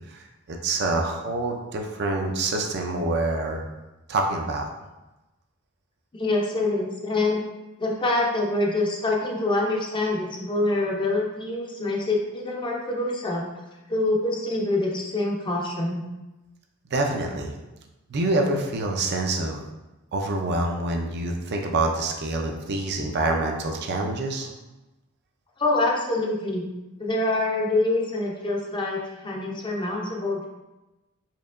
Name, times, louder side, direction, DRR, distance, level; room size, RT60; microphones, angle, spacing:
voice 1, 0.0-3.6 4.1-4.7 16.9-17.5 18.1-19.6 20.1-24.5, right 2 dB, 50° right, 2 dB, 0.4 m, -26 dB
voice 2, 6.1-7.4 7.8-13.5 13.9-16.0 25.6-26.6 27.0-30.5, left 2 dB, 20° left, -1 dB, 0.5 m, -25 dB
4.4 x 2.8 x 2.5 m, 1.0 s
head